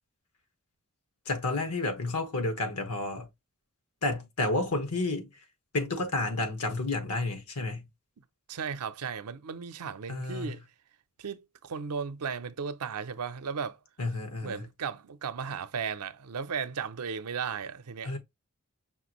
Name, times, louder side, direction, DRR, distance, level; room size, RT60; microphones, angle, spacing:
voice 1, 1.2-3.3 4.0-5.3 5.7-7.9 10.1-10.6 14.0-14.7 18.0-18.2, left 2 dB, 85° left, 1.3 m, -31 dB
voice 2, 8.5-10.6 11.2-13.8 14.4-18.2, right 6 dB, 85° right, 0.6 m, -35 dB
5.7 x 2.6 x 3.0 m
head